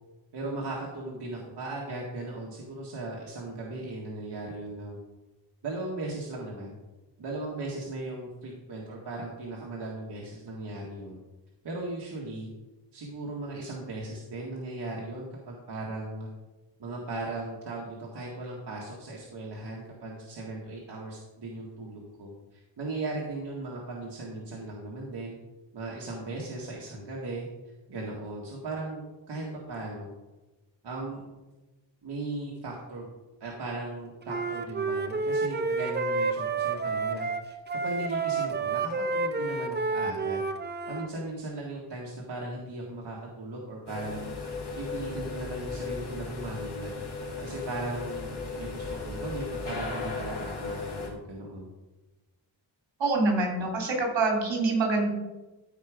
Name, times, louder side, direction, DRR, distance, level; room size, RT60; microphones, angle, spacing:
voice 1, 0.3-5.0 5.6-6.8 7.2-11.2 11.6-12.5 12.9-16.3 16.8-25.4 25.7-27.5 27.9-29.0 29.3-30.1 30.8-31.3 32.0-33.1 33.4-37.3 37.8-40.4 40.9-44.3 44.8-46.9 47.4-51.7, right 2 dB, 60° right, -3 dB, 1.9 m, -37 dB
Wind instrument woodwind instrument, 34.3-41.1, right 4 dB, 25° right, 0.6 m, -30 dB
sound 1, 43.9-51.1, left 4 dB, 65° left, 2.7 m, -36 dB
voice 2, 53.0-55.1, right 3 dB, 80° right, 0 dB, 3.3 m, -25 dB
14.0 x 4.9 x 5.1 m, 1.1 s
wide cardioid pair, 155°, 45 cm